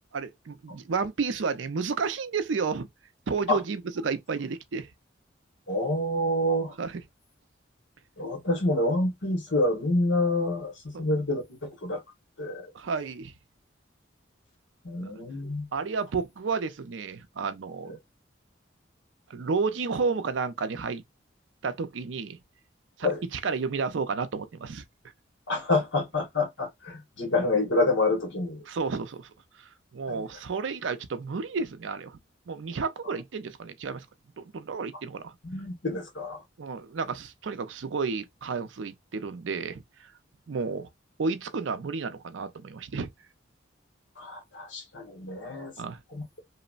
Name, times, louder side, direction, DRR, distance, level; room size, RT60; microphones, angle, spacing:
voice 1, 0.1-2.9 3.3-4.9 6.8-7.0 10.9-11.0 12.7-13.3 15.0-15.1 15.7-18.0 19.3-21.0 21.6-22.4 23.0-24.8 28.7-29.3 29.9-32.2 32.5-34.1 34.4-35.3 36.6-39.8 40.5-40.9 41.2-43.1 45.8-46.0, right 4 dB, 75° right, 0.5 m, -31 dB
voice 2, 5.7-6.7 8.2-12.0 12.4-12.7 14.8-15.7 17.9-18.0 23.0-23.2 25.5-28.6 30.1-30.2 35.4-36.4 44.2-45.7 46.1-46.4, left 2 dB, 70° left, 1.2 m, -27 dB
3.1 x 2.1 x 2.4 m
head